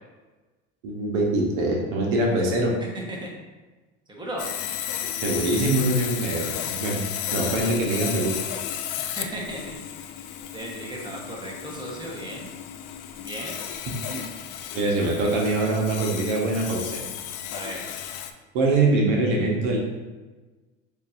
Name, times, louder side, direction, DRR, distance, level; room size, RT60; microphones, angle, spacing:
voice 1, 0.8-2.7 5.2-6.5 6.8-7.0 7.3-8.4 14.1-14.2 14.7-17.0 18.5-19.8, right 2 dB, 75° right, -1 dB, 1.1 m, -23 dB
voice 2, 2.9-3.3 4.1-4.5 9.0-9.8 10.5-12.5 13.1-13.6 17.5-17.8, right 1 dB, 10° right, -2 dB, 1.2 m, -35 dB
Sawing, 4.4-18.3, left 10 dB, 65° left, 0.5 m, -33 dB
6.8 x 2.7 x 2.6 m, 1.2 s
hypercardioid pair, 85°, 37 cm